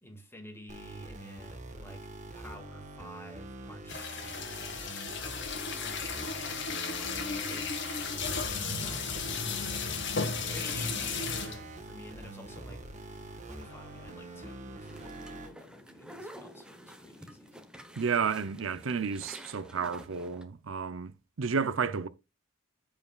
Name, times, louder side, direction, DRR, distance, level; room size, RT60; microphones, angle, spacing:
voice 1, 0.0-2.1 2.3-4.7 5.2-9.8 10.5-12.8 13.5-17.6 21.6-22.0, equal, 10° left, 2.0 m, -50 dB
sound 1, 0.7-15.5, right 2 dB, 35° right, 1.4 m, -45 dB
sound 2, 3.9-11.7 12.3-12.4 12.6-12.8 13.2-14.5, left 5 dB, 60° left, 1.9 m, -35 dB
sound 3, 14.8-20.4, equal, 5° right, 1.0 m, -49 dB
voice 2, 18.0-21.1 21.4-22.1, right 6 dB, 70° right, 0.6 m, -31 dB
14.5 x 5.1 x 2.4 m
head